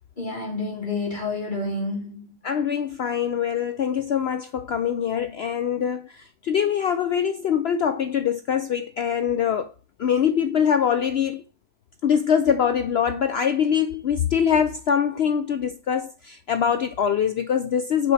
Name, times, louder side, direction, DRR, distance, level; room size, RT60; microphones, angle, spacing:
voice 1, 0.2-2.4, left 3 dB, 30° left, 2.7 m, -29 dB
voice 2, 2.4-9.7 10.0-11.4 12.0-18.1, left 8 dB, 80° left, 0.5 m, -23 dB
7.1 x 6.4 x 4.0 m
omnidirectional pair, 1.7 m